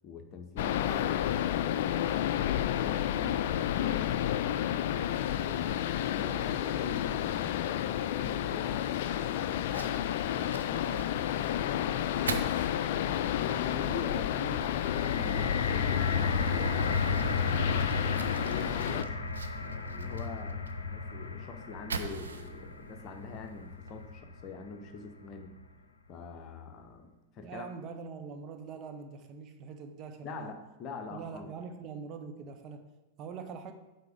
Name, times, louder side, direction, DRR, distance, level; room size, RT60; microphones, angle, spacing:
voice 1, 0.0-2.0 2.3-5.8 6.1-12.5 12.9-19.1 19.6-25.6 26.1-27.7 30.2-31.5, left 4 dB, 35° left, 6 dB, 0.9 m, -44 dB
sound 1, 0.6-19.0, left 11 dB, 55° left, 0.3 m, -31 dB
Fire, 9.6-24.2, right 5 dB, 70° right, 0.6 m, -45 dB
sound 2, 14.5-24.7 25.4-25.5, left 4 dB, 75° left, 0.7 m, -34 dB
voice 2, 27.4-30.5 31.1-32.9 33.2-33.7, right 5 dB, 35° right, 6 dB, 0.8 m, -43 dB
8.2 x 4.4 x 5.1 m, 1.0 s
figure-of-eight pair, 90°, 0 cm